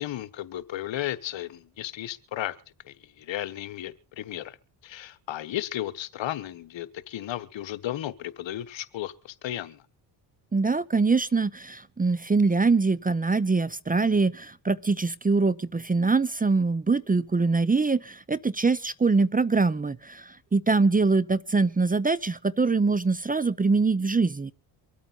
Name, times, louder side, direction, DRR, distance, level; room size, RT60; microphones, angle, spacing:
voice 1, 0.0-2.6 2.9-4.6 4.8-9.8, left 13 dB, 65° left, 1.3 m, -34 dB
voice 2, 10.5-24.5, right 4 dB, 20° right, 0.7 m, -23 dB
24.5 x 8.8 x 4.0 m
supercardioid pair, 70°, 48 cm